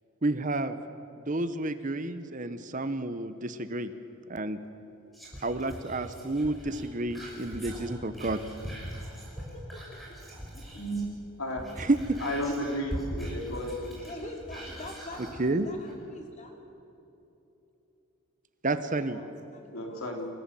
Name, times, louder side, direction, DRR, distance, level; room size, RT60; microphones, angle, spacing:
voice 1, 0.2-0.8 1.3-3.9 4.3-4.6 5.4-8.4 11.8-12.2 15.4-15.7 18.6-19.2, right 2 dB, 35° right, 11 dB, 0.9 m, -30 dB
Whispering, 5.1-11.1 11.5-15.4 15.9-16.0, equal, ahead, 5.6 m, -42 dB
voice 2, 9.4-10.4 10.9-11.0 14.0-16.5 18.7-20.2, left 1 dB, 35° left, 1 dB, 3.2 m, -45 dB
voice 3, 10.8-11.1 11.4-11.6 12.2-14.0 19.7-20.3, equal, 80° left, 2 dB, 3.7 m, -33 dB
27.5 x 16.0 x 7.7 m, 3.0 s
head